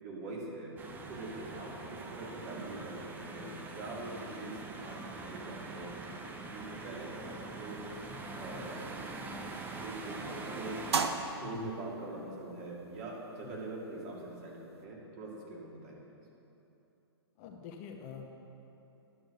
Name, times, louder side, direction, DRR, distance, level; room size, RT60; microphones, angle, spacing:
voice 1, 0.0-6.0 6.4-7.8 8.3-9.3 9.8-10.9 11.4-16.0, right 2 dB, 40° right, -3 dB, 2.4 m, -43 dB
sound 1, 0.8-11.1, right 2 dB, 15° right, 0.7 m, -43 dB
sound 2, 9.4-14.8, right 5 dB, 75° right, 0.7 m, -40 dB
voice 2, 11.4-11.9 13.4-13.5 17.4-18.3, left 7 dB, 35° left, 2 dB, 0.9 m, -46 dB
11.0 x 6.1 x 6.3 m, 2.9 s
figure-of-eight pair, 120°, 14 cm